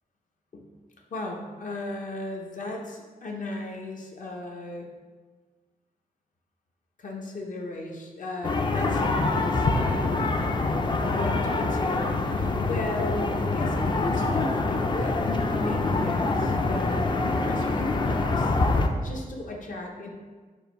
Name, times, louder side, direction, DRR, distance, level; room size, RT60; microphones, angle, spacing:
voice 1, 1.1-4.9 7.0-10.0 11.1-15.2 15.5-18.6 19.0-20.1, left 2 dB, 60° left, 0 dB, 0.8 m, -36 dB
sound 1, 8.4-18.9, left 3 dB, 30° left, 0.4 m, -25 dB
4.8 x 2.5 x 4.3 m, 1.4 s
wide cardioid pair, 95°, 15 cm